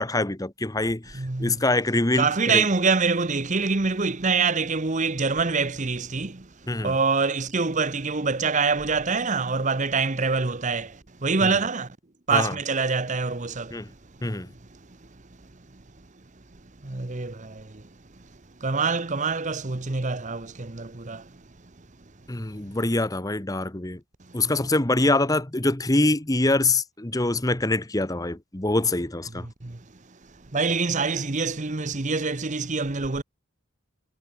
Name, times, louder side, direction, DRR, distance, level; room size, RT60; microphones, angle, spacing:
voice 1, 0.0-2.3 2.5-2.6 6.7-6.9 11.4-11.5 12.3-12.5 13.7-13.9 14.2-14.5 22.3-24.0 24.3-29.5, left 2 dB, 15° left, 1.0 m, -24 dB
voice 2, 1.1-1.6 2.2-12.0 12.3-14.3 14.7-15.1 15.7-15.8 16.8-17.9 18.6-21.4 24.3-24.5 29.3-29.8 30.5-33.2, right 4 dB, 35° right, 1.0 m, -26 dB
head